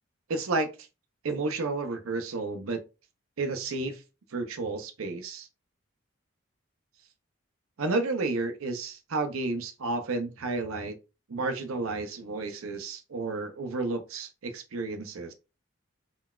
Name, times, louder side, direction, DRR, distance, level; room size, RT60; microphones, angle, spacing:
voice 1, 0.3-0.8 1.2-2.8 3.4-4.0 4.3-5.5 7.8-11.0 11.3-15.3, right 3 dB, 85° right, 0.6 m, -31 dB
3.8 x 2.2 x 2.3 m
head